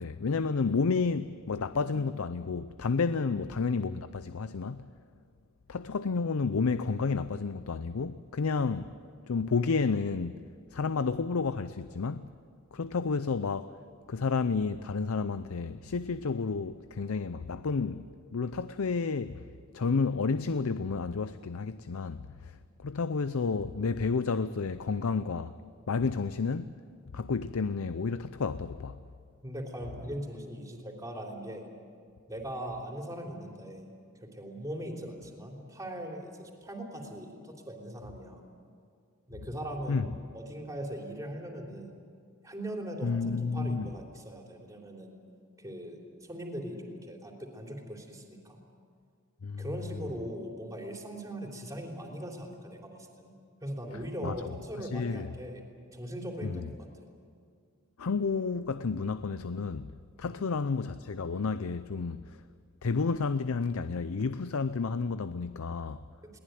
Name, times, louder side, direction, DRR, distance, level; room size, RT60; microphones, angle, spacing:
voice 1, 0.0-4.9 5.7-8.9 9.3-10.4 10.7-12.3 12.7-13.7 14.1-19.4 19.7-22.6 22.8-25.5 25.9-26.7 27.1-29.0 39.9-40.0 43.0-43.9 49.4-49.6 54.2-54.5 54.8-55.3 56.4-56.6 58.0-59.9 60.2-62.4 62.8-66.0, left 4 dB, 75° left, 0.6 m, -31 dB
voice 2, 29.4-31.7 32.3-33.9 34.2-38.4 39.3-42.0 42.4-45.1 45.6-48.6 49.6-53.3 53.6-55.6 55.9-56.7 60.3-60.5 66.2-66.4, equal, 15° right, 3.3 m, -40 dB
22.0 x 18.5 x 9.3 m
head